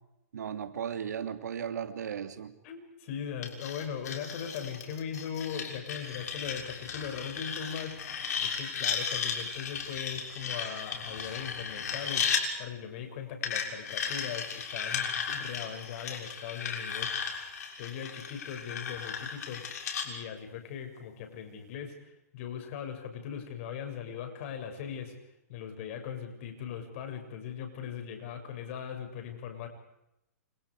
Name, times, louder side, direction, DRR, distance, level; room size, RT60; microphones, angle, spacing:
voice 1, 0.3-2.5, right 8 dB, 75° right, 9 dB, 3.1 m, -36 dB
voice 2, 2.6-8.0 8.4-12.3 12.6-17.4 17.8-19.7 20.0-25.2 25.5-29.7, left 8 dB, 50° left, 5 dB, 7.0 m, -39 dB
sound 1, 3.4-12.4 13.4-20.1, left 6 dB, 70° left, 6.7 m, -35 dB
29.0 x 28.5 x 5.0 m, 0.85 s
hypercardioid pair, 140°, 9 cm